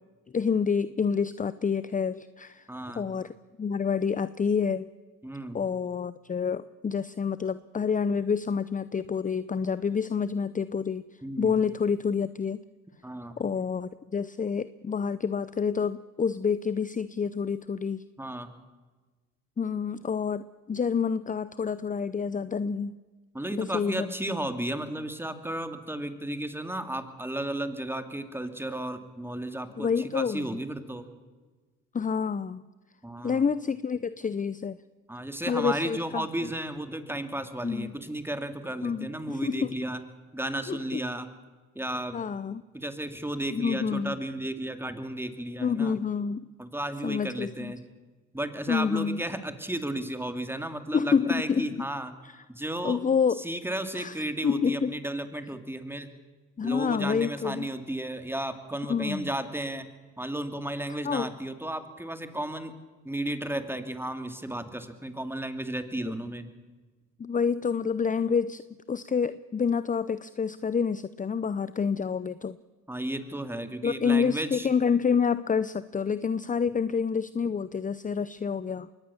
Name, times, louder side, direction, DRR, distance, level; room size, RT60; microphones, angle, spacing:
voice 1, 0.3-2.6 3.0-3.3 3.6-4.9 5.5-11.0 11.4-12.6 13.4-18.0 19.6-22.9 23.6-24.1 29.8-30.5 31.9-32.6 33.2-34.8 35.5-36.5 37.6-37.9 38.8-39.7 40.7-41.0 42.1-42.6 43.5-44.2 45.6-46.4 47.0-47.7 48.7-49.2 50.9-51.7 52.2-52.4 52.8-53.4 53.9-54.2 54.4-54.9 56.6-57.7 58.9-59.3 61.0-61.3 67.2-72.6 73.8-78.9, left 6 dB, 25° left, 16 dB, 0.6 m, -28 dB
voice 2, 2.7-3.0 5.2-5.6 11.2-11.5 13.0-13.4 18.2-18.5 23.3-31.1 33.0-33.4 35.1-40.0 40.3-41.3 41.7-42.2 42.7-46.0 46.6-47.8 48.3-52.2 52.5-53.0 53.4-56.1 56.6-59.9 60.2-62.7 63.0-66.5 72.9-74.7, right 1 dB, 5° right, 8 dB, 2.6 m, -34 dB
22.5 x 18.0 x 7.1 m, 1.3 s
supercardioid pair, 70°, 34 cm